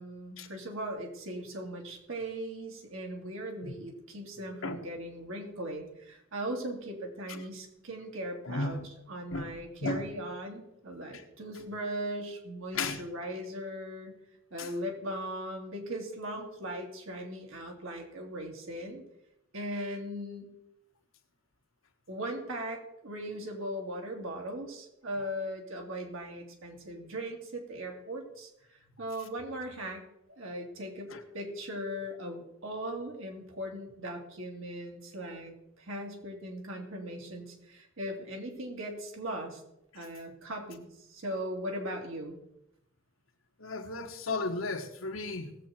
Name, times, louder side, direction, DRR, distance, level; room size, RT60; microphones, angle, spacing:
voice 1, 0.0-8.8 9.1-14.1 14.5-19.0 19.5-20.5 22.1-28.5 29.0-30.0 30.4-31.1 31.3-39.6 39.9-42.4, right 1 dB, 85° right, 2.9 m, -39 dB
voice 2, 8.4-8.9 9.3-10.1 11.1-11.2 12.7-13.0 14.6-14.7 31.1-31.2 43.6-45.5, left 3 dB, 85° left, 1.4 m, -35 dB
18.5 x 7.8 x 4.4 m
head